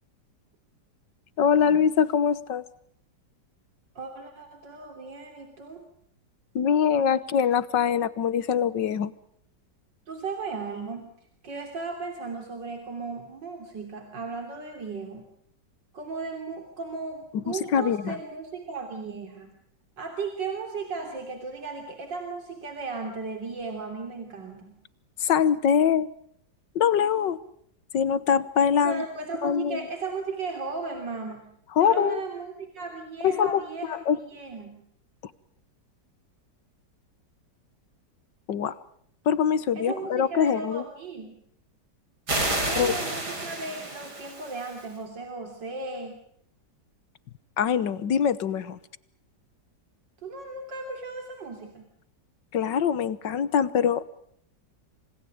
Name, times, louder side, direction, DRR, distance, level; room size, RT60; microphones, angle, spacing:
voice 1, 1.4-2.6 6.6-9.1 17.3-18.1 25.2-26.1 26.8-27.4 27.9-29.0 29.4-29.8 31.8-32.2 33.2-33.6 33.9-34.2 38.5-38.7 39.3-40.8 42.8-43.0 47.6-48.8 52.5-54.2, left 8 dB, 90° left, 17 dB, 1.9 m, -23 dB
voice 2, 4.0-5.8 10.1-11.1 11.4-15.3 15.9-19.5 20.0-24.8 28.8-31.5 31.8-34.8 39.8-41.4 42.6-46.2 50.2-51.9, right 4 dB, 90° right, 4 dB, 3.8 m, -36 dB
sound 1, 42.3-44.8, right 2 dB, 65° right, 6.0 m, -30 dB
27.5 x 26.5 x 5.1 m, 0.69 s
omnidirectional pair, 1.9 m